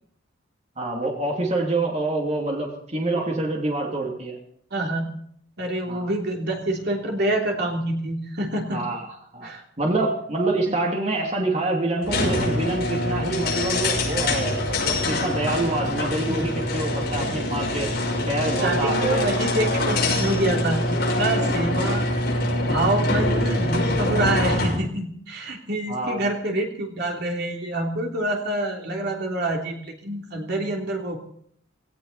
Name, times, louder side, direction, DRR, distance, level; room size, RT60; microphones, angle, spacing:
voice 1, 0.8-4.4 5.9-6.1 8.7-9.5 9.8-17.9 18.3-19.4 21.4-21.6 25.9-26.2, right 2 dB, 35° right, 0 dB, 2.8 m, -26 dB
voice 2, 4.7-5.2 5.6-8.8 9.4-9.6 18.6-22.1 22.7-31.2, right 1 dB, 60° right, 1 dB, 3.2 m, -26 dB
sound 1, 12.0-24.8, left 1 dB, 55° left, 6.4 m, -24 dB
18.5 x 18.0 x 4.2 m, 0.66 s
head